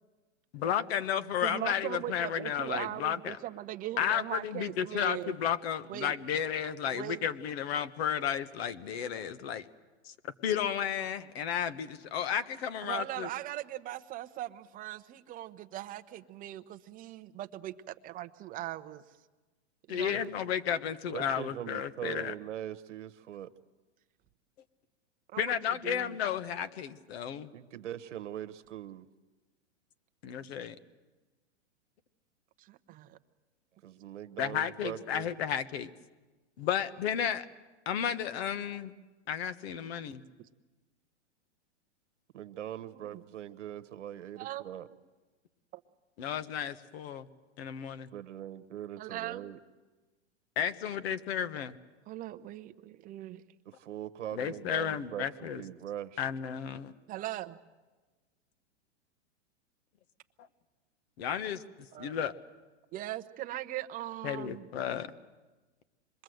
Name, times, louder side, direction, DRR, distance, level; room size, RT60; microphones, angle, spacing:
voice 1, 0.5-3.4 4.0-9.6 10.0-10.1 10.4-13.3 19.9-22.3 25.4-27.5 30.2-30.7 34.4-35.9 36.6-37.4 37.8-38.9 39.3-40.2 46.2-47.3 47.6-48.1 50.6-51.7 54.3-55.6 56.2-56.9 61.2-61.6 62.0-62.3 64.2-65.1, left 9 dB, 60° left, 11 dB, 1.4 m, -33 dB
voice 2, 1.4-5.3 5.9-6.1 6.9-7.3 12.8-19.0 19.9-20.3 25.3-26.2 32.6-33.2 42.9-43.2 44.4-44.7 45.7-45.8 49.0-49.5 52.1-53.4 57.1-57.6 61.9-62.3 62.9-64.7, right 14 dB, 25° right, 9 dB, 0.8 m, -40 dB
voice 3, 21.1-23.5 27.5-29.1 33.8-35.3 42.3-44.9 48.1-49.6 53.6-56.3, right 11 dB, 85° right, 12 dB, 1.2 m, -41 dB
26.5 x 22.0 x 7.9 m, 1.2 s
hypercardioid pair, 135°, 35 cm